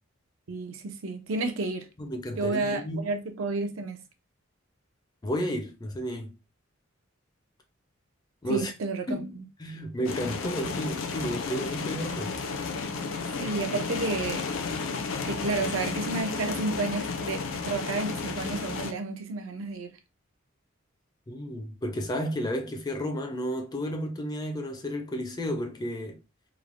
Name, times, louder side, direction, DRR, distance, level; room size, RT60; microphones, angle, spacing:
voice 1, 0.5-1.9 2.4-4.0 8.5-9.4 13.4-14.5 15.3-19.9, right 3 dB, 85° right, 0.5 m, -31 dB
voice 2, 2.0-3.1 5.2-6.4 8.4-8.7 9.1-9.3 9.6-12.4 21.3-26.2, equal, 20° left, 0.4 m, -32 dB
sound 1, 10.0-18.9, left 4 dB, 80° left, 0.5 m, -32 dB
3.1 x 2.1 x 2.5 m
head